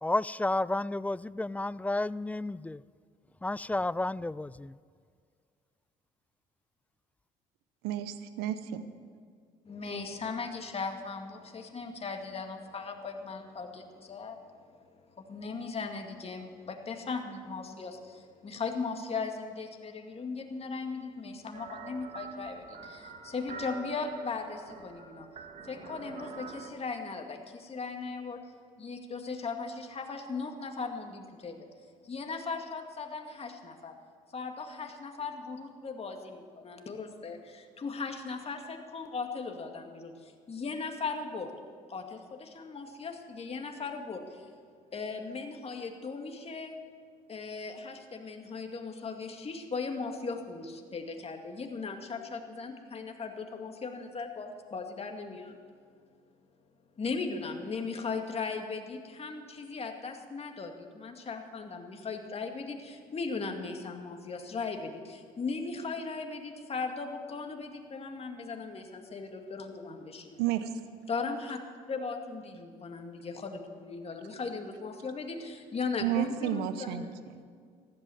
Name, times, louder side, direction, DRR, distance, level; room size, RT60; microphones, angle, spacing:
voice 1, 0.0-2.8 3.4-4.8, left 2 dB, 10° left, 20 dB, 0.3 m, -31 dB
voice 2, 7.8-8.8 70.4-70.7 76.0-77.0 77.3-77.4, right 12 dB, 80° right, 11 dB, 0.9 m, -31 dB
voice 3, 9.7-25.3 25.6-28.4 28.8-31.7 32.0-33.9 34.3-41.5 41.9-44.5 44.9-46.8 47.3-55.5 57.0-70.4 71.1-71.6 71.9-77.2, left 4 dB, 35° left, 4 dB, 2.2 m, -38 dB
sound 1, 21.5-26.7, right 4 dB, 45° right, 2.1 m, -45 dB
14.5 x 12.0 x 7.1 m, 2.1 s
supercardioid pair, 70°, 17 cm